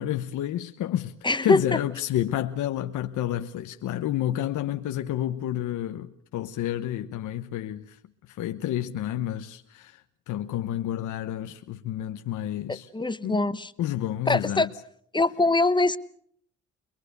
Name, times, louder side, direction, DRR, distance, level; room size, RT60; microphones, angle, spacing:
voice 1, 0.0-8.0 8.3-10.0 10.3-12.9 13.2-13.5 13.8-14.7, left 12 dB, 80° left, 1.1 m, -30 dB
voice 2, 1.2-1.8 12.7-13.7 14.3-14.7 15.1-16.0, left 2 dB, 15° left, 1.0 m, -23 dB
23.5 x 22.5 x 6.8 m
cardioid pair, 90°, 30 cm